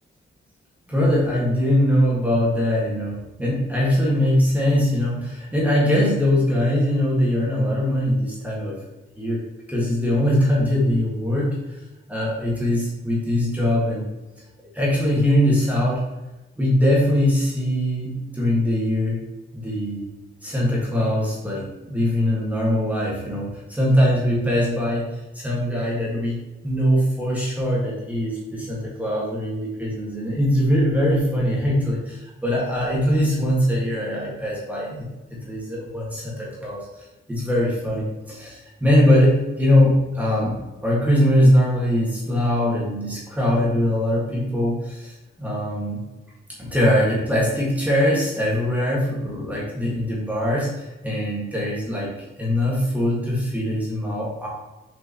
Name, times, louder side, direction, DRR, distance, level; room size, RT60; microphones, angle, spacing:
voice 1, 0.9-8.8 9.2-9.4 9.7-11.5 12.1-14.0 14.7-16.0 16.6-19.2 19.5-20.1 20.4-26.4 26.6-36.9 37.3-46.0 46.6-52.1 52.4-54.5, left 1 dB, 5° right, -5 dB, 1.8 m, -21 dB
6.6 x 5.2 x 3.0 m, 1.0 s
wide cardioid pair, 135°, 21 cm